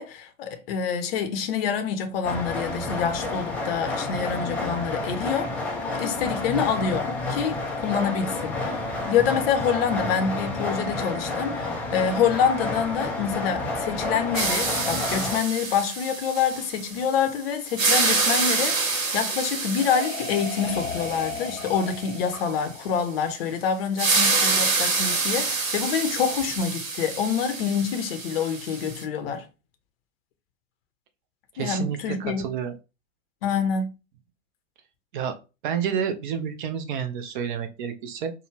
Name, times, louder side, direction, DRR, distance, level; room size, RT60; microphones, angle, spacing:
voice 1, 0.0-5.5 6.0-29.5 31.6-32.4 33.4-33.9, left 7 dB, 45° left, 0.7 m, -26 dB
sound 1, 2.2-15.4, left 2 dB, 5° left, 0.4 m, -30 dB
sound 2, 14.3-17.3 17.6-22.4 24.0-29.0, right 4 dB, 70° right, 1.2 m, -27 dB
sound 3, 19.2-23.8, left 4 dB, 85° left, 0.8 m, -36 dB
voice 2, 31.5-32.7 35.1-35.3 35.6-38.3, right 8 dB, 40° right, 0.7 m, -29 dB
4.6 x 2.2 x 3.2 m
figure-of-eight pair, 100°, 40 cm